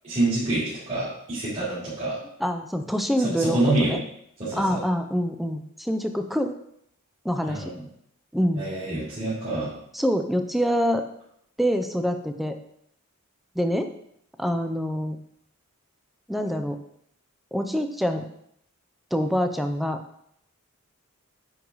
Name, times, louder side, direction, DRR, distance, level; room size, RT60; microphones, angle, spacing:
voice 1, 0.0-2.2 3.2-4.0 4.4-4.8 7.5-7.8 8.6-9.7, right 2 dB, 30° right, -11 dB, 3.5 m, -27 dB
voice 2, 2.4-4.0 4.6-6.5 7.2-7.7 8.3-8.7 9.9-11.0 11.6-12.6 13.6-13.9 14.4-15.2 16.3-16.8 17.5-18.3 19.1-20.0, equal, ahead, 6 dB, 0.6 m, -25 dB
9.5 x 4.7 x 4.0 m, 0.72 s
head